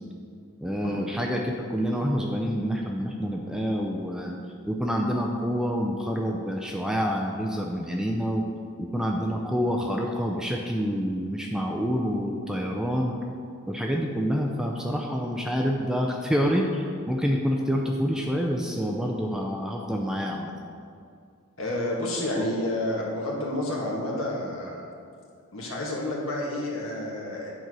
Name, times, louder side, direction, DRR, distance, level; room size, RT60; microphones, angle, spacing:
voice 1, 0.6-4.4 4.7-8.4 8.8-13.2 13.7-20.5, equal, 5° right, 0 dB, 0.5 m, -27 dB
voice 2, 21.6-24.9 25.5-27.5, left 1 dB, 60° left, -3 dB, 1.9 m, -30 dB
9.3 x 4.5 x 6.2 m, 2.3 s
head